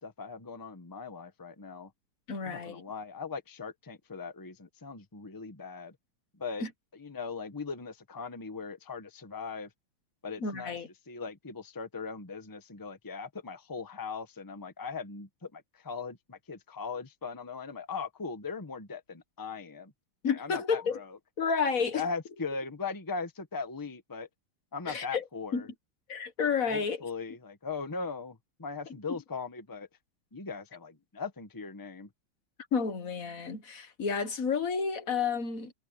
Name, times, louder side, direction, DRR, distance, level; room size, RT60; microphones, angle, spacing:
voice 1, 0.0-1.9 2.4-5.9 6.3-6.6 6.9-9.7 10.2-10.8 11.1-19.9 20.3-21.2 21.8-24.3 24.7-25.7 26.7-29.9 30.3-32.1, left 4 dB, 10° left, 1.0 m, -39 dB
voice 2, 2.3-2.8 6.6-6.7 10.4-10.9 20.2-21.0 21.4-22.1 24.9-25.2 25.5-25.6 26.1-27.0 32.7-35.7, left 5 dB, 45° left, 1.7 m, -30 dB
omnidirectional pair, 2.3 m